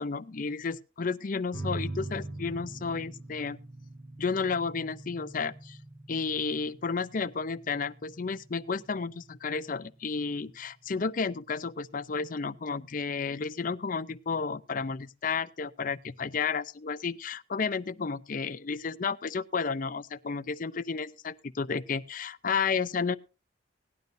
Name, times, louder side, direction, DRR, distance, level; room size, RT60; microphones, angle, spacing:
voice 1, 0.0-3.6 4.2-5.8 6.1-23.1, left 5 dB, 45° left, 0.5 m, -32 dB
sound 1, 1.5-12.5, right 2 dB, 80° right, 3.6 m, -43 dB
18.0 x 10.5 x 2.6 m
head